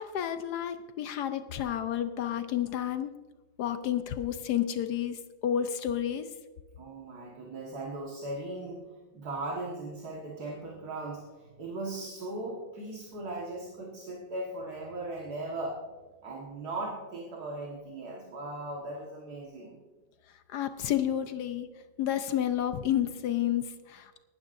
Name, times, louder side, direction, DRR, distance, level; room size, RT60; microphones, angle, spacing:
voice 1, 0.0-3.1 3.6-6.3 20.5-21.7 22.0-24.2, left 10 dB, 70° left, 10 dB, 1.1 m, -30 dB
voice 2, 6.8-8.8 9.1-15.8 16.2-19.8, right 2 dB, 55° right, -2 dB, 2.0 m, -38 dB
18.5 x 12.0 x 2.6 m, 1.2 s
omnidirectional pair, 2.0 m